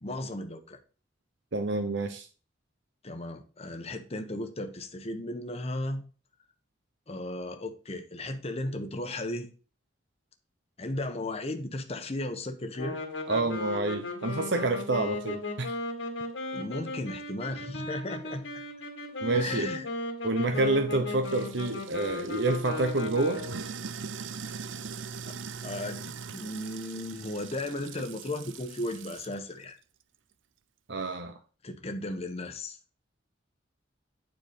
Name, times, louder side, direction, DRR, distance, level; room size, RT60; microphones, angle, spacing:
voice 1, 0.0-0.8 3.0-6.0 7.1-9.5 10.8-13.0 16.5-18.4 19.3-19.8 20.5-20.6 24.4-24.5 25.3-25.4 25.6-29.7 31.6-32.8, left 1 dB, 35° left, 1.1 m, -35 dB
voice 2, 1.5-2.3 13.3-15.8 19.2-19.7 20.2-23.4 30.9-31.3, right 2 dB, 65° right, 0.9 m, -28 dB
sound 1, 12.7-23.7, left 2 dB, 85° left, 2.1 m, -36 dB
Sink (filling or washing), 21.2-29.4, right 6 dB, 90° right, 0.6 m, -42 dB
9.4 x 4.6 x 5.1 m
head